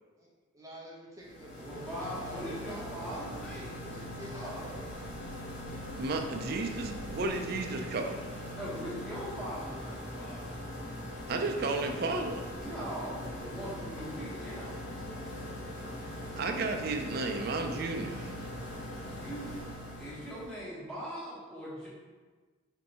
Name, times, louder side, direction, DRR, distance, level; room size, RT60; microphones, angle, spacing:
voice 1, 0.2-3.3 3.8-5.0, equal, 15° right, -4 dB, 0.7 m, -49 dB
sound 1, 1.2-20.6, left 1 dB, 75° left, 1.3 m, -41 dB
voice 2, 1.6-3.8 4.3-4.6 8.5-10.5 12.5-14.8 19.0-19.7 20.0-21.9, equal, 5° left, -9 dB, 1.3 m, -41 dB
sound 2, 3.8-18.2, equal, 45° left, 1.1 m, -54 dB
voice 3, 6.0-8.3 11.3-12.5 16.3-18.3, right 3 dB, 50° right, 4 dB, 0.4 m, -33 dB
4.4 x 2.7 x 4.1 m, 1.4 s
head